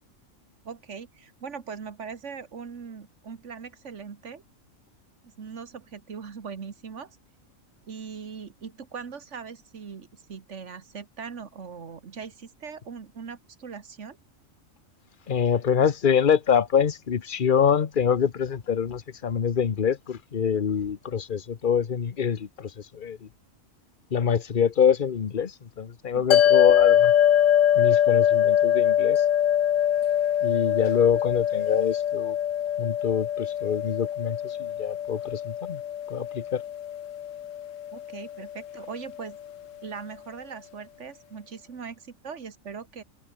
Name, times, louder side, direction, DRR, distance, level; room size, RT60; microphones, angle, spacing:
voice 1, 0.6-4.4 5.4-7.1 7.9-14.2 26.1-26.4 37.9-39.4 39.8-43.0, right 6 dB, 65° right, 1.8 m, -40 dB
voice 2, 15.3-23.3 24.1-27.1 27.7-29.2 30.4-32.4 32.8-35.8 36.1-36.6, left 7 dB, 40° left, 1.1 m, -25 dB
sound 1, 26.3-38.8, left 10 dB, 75° left, 1.2 m, -23 dB
omnidirectional pair, 1.4 m